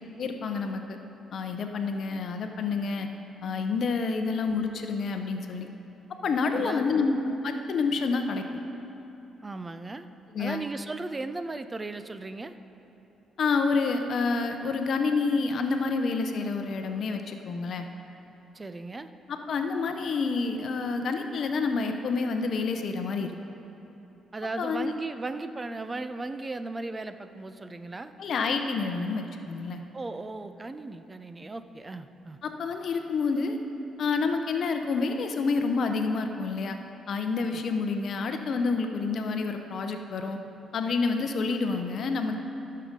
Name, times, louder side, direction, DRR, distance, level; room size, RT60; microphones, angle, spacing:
voice 1, 0.2-1.0 1.3-3.1 3.4-5.7 6.2-8.4 10.3-10.6 13.4-17.9 19.3-23.3 24.6-24.9 28.2-29.8 32.4-33.6 34.0-36.8 37.1-40.4 40.7-42.4, left 4 dB, 60° left, 6 dB, 0.7 m, -28 dB
voice 2, 6.5-7.0 9.4-10.1 10.4-12.5 18.5-19.1 24.3-28.1 29.9-32.4 37.5-37.6, right 2 dB, 25° right, 10 dB, 0.5 m, -36 dB
14.5 x 6.7 x 5.2 m, 2.9 s
cardioid pair, 90°, 0 cm